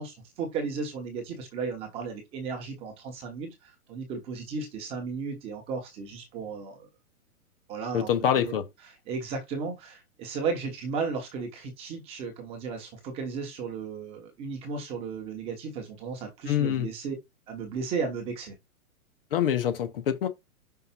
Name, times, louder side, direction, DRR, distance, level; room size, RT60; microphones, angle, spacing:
voice 1, 0.0-6.9 7.7-8.1 8.4-8.5 9.1-17.2 17.5-18.6, right 5 dB, 15° right, 1.0 m, -34 dB
voice 2, 7.9-8.6 16.5-16.9 19.3-20.3, left 9 dB, 40° left, 0.9 m, -25 dB
5.7 x 4.6 x 4.4 m
hypercardioid pair, 170°, 43 cm